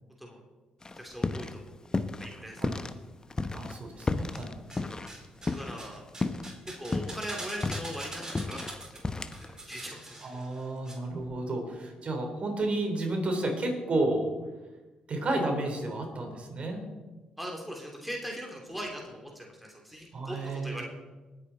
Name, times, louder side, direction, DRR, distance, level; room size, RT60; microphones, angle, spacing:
sound 1, 0.8-1.6 1.9-2.9 3.3-5.9 6.2-6.5 6.8-9.5, left 3 dB, 25° left, 1.0 m, -32 dB
voice 1, 0.9-2.6 3.4-3.6 5.5-6.0 6.7-9.0 9.3-10.4 17.4-20.8, equal, ahead, -1 dB, 3.2 m, -40 dB
voice 2, 3.5-4.5 10.2-14.3 15.1-16.8 20.1-20.8, right 2 dB, 45° right, 3 dB, 3.9 m, -31 dB
sound 2, 4.0-4.8 5.1-10.9 11.2-11.3, right 2 dB, 25° right, 3.9 m, -44 dB
19.5 x 8.7 x 4.3 m, 1.2 s
supercardioid pair, 55°, 3 cm